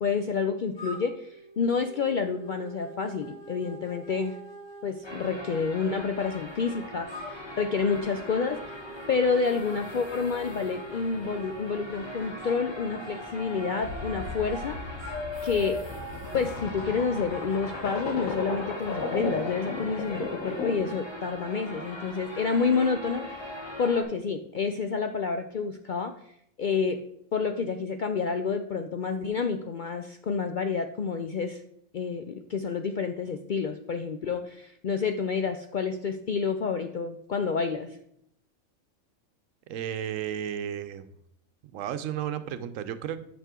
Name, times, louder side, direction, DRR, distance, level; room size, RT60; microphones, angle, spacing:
voice 1, 0.0-4.4 4.8-8.8 9.1-14.8 15.4-15.8 16.3-23.4 23.8-26.1 26.6-27.0 27.3-31.6 31.9-38.0, left 5 dB, 65° left, 7 dB, 0.5 m, -29 dB
sound 1, 0.8-6.3 7.1-11.5 12.4-14.7 15.0-18.2, left 1 dB, 45° left, 3.6 m, -43 dB
sound 2, 5.0-24.0, equal, 20° left, 1.2 m, -41 dB
sound 3, 13.8-21.0, left 3 dB, 85° left, 1.5 m, -35 dB
voice 2, 39.7-41.0 41.6-43.2, right 10 dB, 80° right, 12 dB, 1.0 m, -33 dB
8.2 x 6.2 x 3.7 m, 0.74 s
omnidirectional pair, 1.3 m